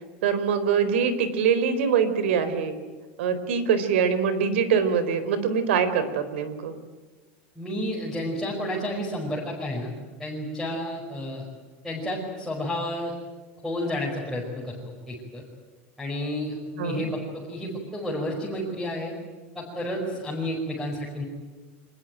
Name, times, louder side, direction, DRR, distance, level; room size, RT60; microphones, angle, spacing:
voice 1, 0.2-2.8 3.2-6.8 16.8-17.0, right 6 dB, 80° right, 12 dB, 4.2 m, -23 dB
voice 2, 7.6-9.9 10.2-11.4 11.8-13.2 13.6-14.8 15.1-15.4 16.0-19.1 19.6-21.2, left 1 dB, ahead, -3 dB, 5.2 m, -31 dB
25.5 x 20.5 x 9.3 m, 1.3 s
supercardioid pair, 165°, 6 cm